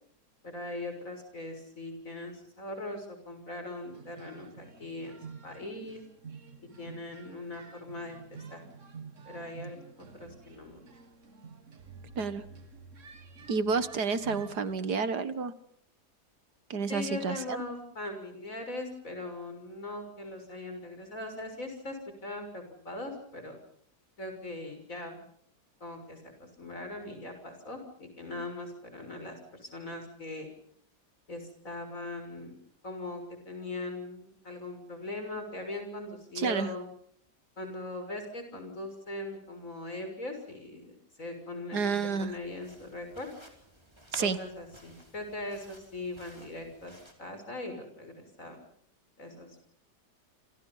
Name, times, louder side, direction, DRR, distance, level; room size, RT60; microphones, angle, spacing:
voice 1, 0.4-5.2 5.4-6.0 6.8-8.6 9.3-10.8 16.9-23.6 24.2-25.3 25.8-30.5 31.3-32.6 32.8-36.9 37.6-41.8 42.2-43.3 44.2-48.6 49.2-49.6, left 2 dB, 50° left, 6 dB, 6.8 m, -40 dB
sound 1, 3.9-14.8, right 5 dB, 50° right, 2.0 m, -49 dB
voice 2, 12.2-12.5 13.5-15.5 16.7-17.6 36.4-36.7 41.7-42.3 44.1-44.4, right 5 dB, 75° right, 13 dB, 2.0 m, -30 dB
sound 2, 42.2-47.1, right 1 dB, 15° right, 4.5 m, -52 dB
28.0 x 27.0 x 5.6 m, 0.62 s
omnidirectional pair, 1.8 m